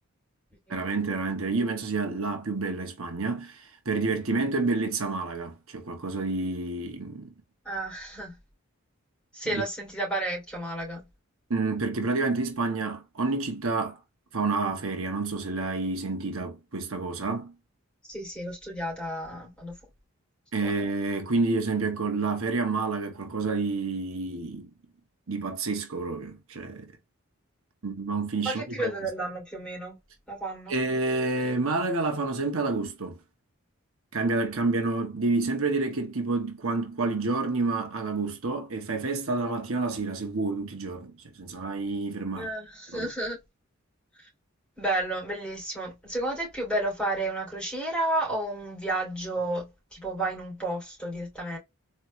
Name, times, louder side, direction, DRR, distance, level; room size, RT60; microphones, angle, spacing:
voice 1, 0.7-7.3 9.5-9.6 11.5-14.0 14.3-17.5 20.5-24.7 25.3-26.9 27.8-29.1 30.7-33.2 34.1-42.5 42.9-43.1, right 3 dB, 75° right, 1.2 m, -29 dB
voice 2, 7.6-8.4 9.3-11.0 18.1-19.7 20.6-20.7 28.4-30.0 30.3-30.7 42.4-43.4 44.8-51.6, right 1 dB, 5° left, 2.9 m, -32 dB
4.1 x 3.1 x 3.2 m
head